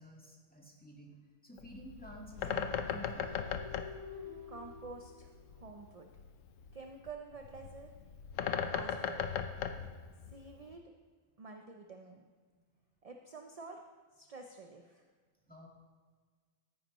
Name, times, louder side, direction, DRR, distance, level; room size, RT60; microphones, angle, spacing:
voice 1, 0.0-3.5 12.6-12.7 15.5-15.7, equal, 5° left, -2 dB, 1.6 m, -51 dB
Bird, 1.6-10.7, left 7 dB, 75° left, 1.0 m, -39 dB
sound 1, 2.3-6.2, left 5 dB, 75° right, 1.7 m, -50 dB
voice 2, 4.5-6.1 6.7-7.9 8.6-9.3 10.3-10.9 11.4-12.2 13.0-13.8 14.1-15.0, right 4 dB, 40° right, 3 dB, 0.5 m, -49 dB
14.5 x 9.8 x 3.1 m, 1.5 s
omnidirectional pair, 1.4 m